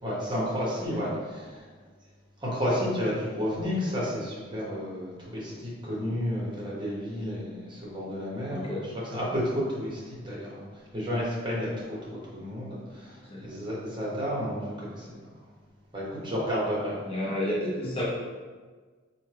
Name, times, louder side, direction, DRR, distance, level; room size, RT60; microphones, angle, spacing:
voice 1, 0.0-1.7 2.4-15.1 15.9-17.0, equal, 25° right, -6 dB, 1.0 m, -31 dB
voice 2, 8.5-8.8 13.3-13.4 17.0-18.0, left 1 dB, 30° left, -5 dB, 0.6 m, -30 dB
4.2 x 2.2 x 3.3 m, 1.4 s
head